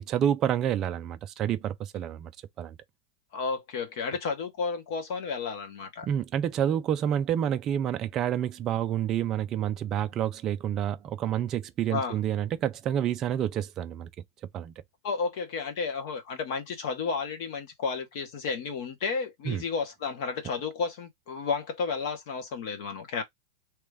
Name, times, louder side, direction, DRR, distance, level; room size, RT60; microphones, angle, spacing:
voice 1, 0.0-2.3 2.6-2.8 6.0-14.1 14.5-14.7 19.5-19.6, right 10 dB, 20° right, 0.3 m, -28 dB
voice 2, 3.3-6.1 11.9-12.2 15.0-23.2, left 5 dB, 45° left, 1.0 m, -32 dB
3.0 x 2.4 x 3.3 m
supercardioid pair, 175°, 2 cm